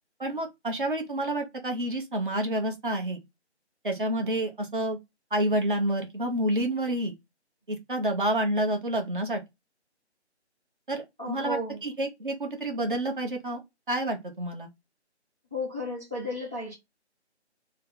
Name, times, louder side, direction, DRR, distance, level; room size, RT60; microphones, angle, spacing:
voice 1, 0.2-3.2 3.8-5.0 5.3-7.1 7.7-9.4 10.9-13.6 13.9-14.7, right 1 dB, 45° right, 1.1 m, -29 dB
voice 2, 11.2-11.8 15.5-16.7, left 2 dB, 15° right, 0.6 m, -33 dB
3.3 x 2.2 x 4.0 m
figure-of-eight pair, 150°, 34 cm